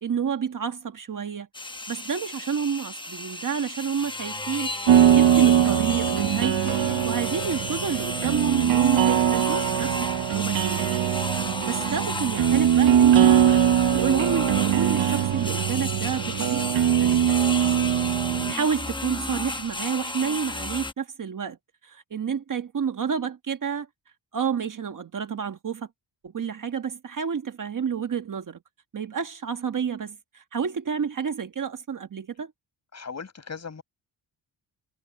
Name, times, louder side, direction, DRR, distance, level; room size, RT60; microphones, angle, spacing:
voice 1, 0.0-1.5 1.9-4.7 5.1-10.9 11.6-13.4 13.9-17.2 18.5-21.6 21.8-23.9 24.3-25.9 26.2-28.6 28.9-32.5, right 7 dB, 45° right, 1.4 m, -29 dB
sound 1, 1.5-20.9, left 2 dB, 10° left, 0.9 m, -33 dB
sound 2, 4.9-18.5, right 10 dB, 85° right, 1.2 m, -21 dB
voice 2, 32.9-33.8, left 5 dB, 35° left, 6.1 m, -39 dB
wide cardioid pair, 130°, 44 cm